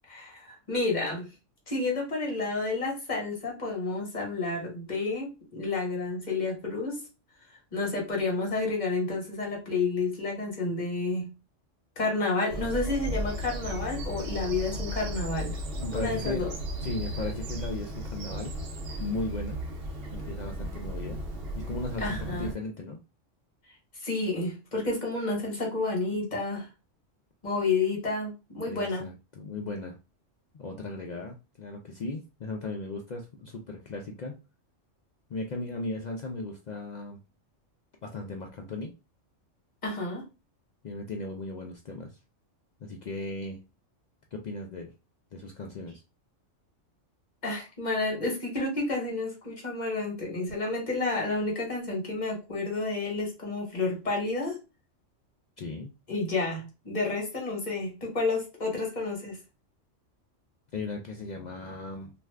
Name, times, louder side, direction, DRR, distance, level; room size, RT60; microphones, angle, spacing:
voice 1, 0.1-1.3 1.7-7.0 7.7-11.3 12.0-15.6 15.9-16.5 22.0-22.5 24.0-26.7 27.4-29.0 39.8-40.2 47.4-54.6 56.1-59.4, left 3 dB, 40° left, 1.2 m, -30 dB
Bird vocalization bird call bird song, 12.5-22.5, equal, 60° right, 0.8 m, -35 dB
voice 2, 15.8-16.4 16.8-18.6 19.0-19.6 20.1-21.2 21.5-23.0 28.7-30.0 30.5-34.4 35.3-37.2 38.0-38.9 40.8-42.1 42.8-43.6 44.3-44.9 45.3-46.0 55.6-55.9 60.7-62.1, left 2 dB, 70° left, 0.4 m, -36 dB
2.5 x 2.4 x 3.2 m
omnidirectional pair, 1.3 m